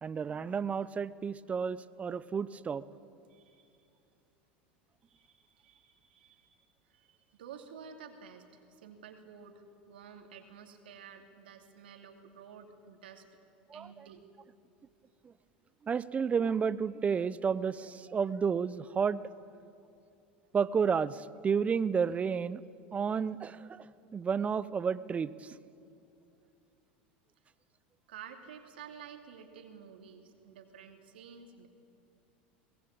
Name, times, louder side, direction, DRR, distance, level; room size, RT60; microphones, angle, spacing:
voice 1, 0.0-2.8 13.7-14.1 15.2-15.3 15.8-19.2 20.5-22.6 22.9-23.9 24.1-25.6, right 6 dB, 25° right, 17 dB, 0.7 m, -31 dB
voice 2, 3.3-3.9 5.1-6.5 6.9-13.2 13.7-14.3 28.1-31.7, right 7 dB, 80° right, 4 dB, 2.7 m, -51 dB
22.0 x 20.0 x 8.8 m, 2.6 s
hypercardioid pair, 95°, 5 cm